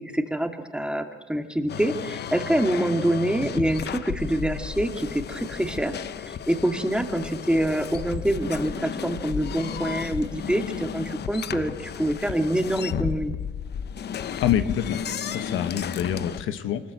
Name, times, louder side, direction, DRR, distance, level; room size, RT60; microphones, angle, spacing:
voice 1, 0.1-13.3, right 1 dB, 5° right, 5 dB, 2.4 m, -26 dB
sound 1, 1.7-16.4, left 8 dB, 55° left, 0.9 m, -33 dB
voice 2, 14.4-16.8, left 10 dB, 85° left, 10 dB, 1.4 m, -26 dB
24.5 x 20.5 x 8.0 m, 1.3 s
cardioid pair, 90°, 20 cm